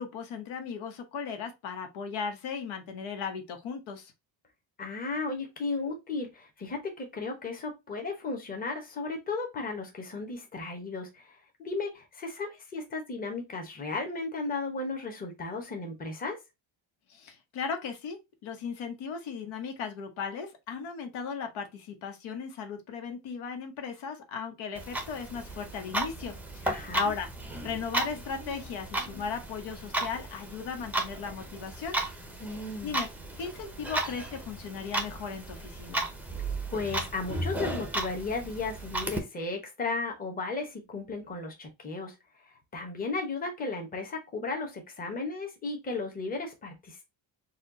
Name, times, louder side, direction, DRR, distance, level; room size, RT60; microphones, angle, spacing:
voice 1, 0.0-4.1 17.1-26.7 26.9-27.3 27.6-32.0 32.8-33.1 33.4-36.0, left 6 dB, 85° left, 1.1 m, -37 dB
voice 2, 4.8-16.4 26.6-27.0 32.4-33.0 36.7-42.1 42.4-47.0, left 3 dB, 20° left, 0.9 m, -35 dB
Clock, 24.8-39.2, right 2 dB, 5° right, 0.5 m, -35 dB
4.2 x 2.3 x 3.7 m
cardioid pair, 175°, 46 cm